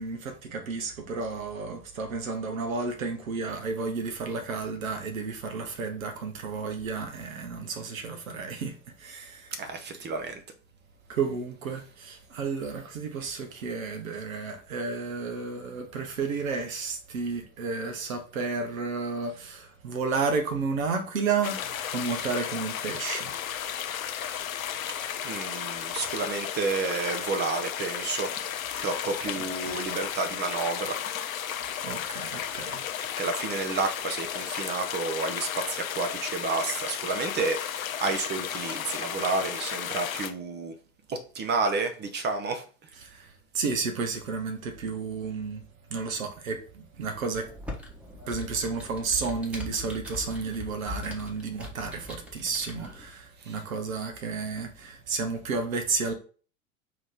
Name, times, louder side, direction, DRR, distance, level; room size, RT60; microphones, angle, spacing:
voice 1, 0.0-10.1 11.1-23.4 29.3-29.8 31.8-33.2 42.9-45.6 45.9-47.5 48.3-56.1, right 4 dB, 75° right, 1.1 m, -32 dB
voice 2, 9.6-10.4 25.2-28.5 28.8-31.0 33.2-40.7 41.1-42.6 53.4-53.6, right 4 dB, 25° right, 0.6 m, -30 dB
sound 1, 21.4-40.3, left 9 dB, 80° left, 0.6 m, -34 dB
Computer keyboard, 47.3-53.1, left 2 dB, 5° right, 1.1 m, -41 dB
4.7 x 3.0 x 3.6 m
figure-of-eight pair, 85°, 41 cm